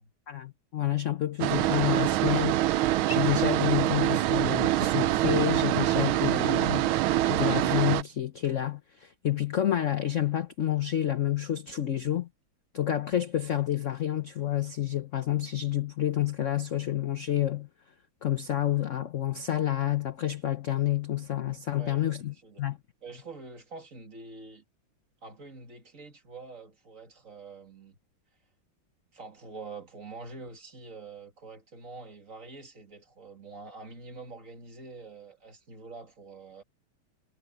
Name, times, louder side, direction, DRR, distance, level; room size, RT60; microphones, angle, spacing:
voice 1, 0.3-2.6 3.1-6.9 7.3-12.3 12.7-17.7 18.2-22.8, left 12 dB, 50° left, 0.9 m, -29 dB
sound 1, 1.4-8.0, right 14 dB, 90° right, 1.5 m, -25 dB
voice 2, 21.8-22.7 23.0-24.6 25.2-28.0 29.1-36.6, right 3 dB, 40° right, 2.6 m, -46 dB
omnidirectional pair, 2.2 m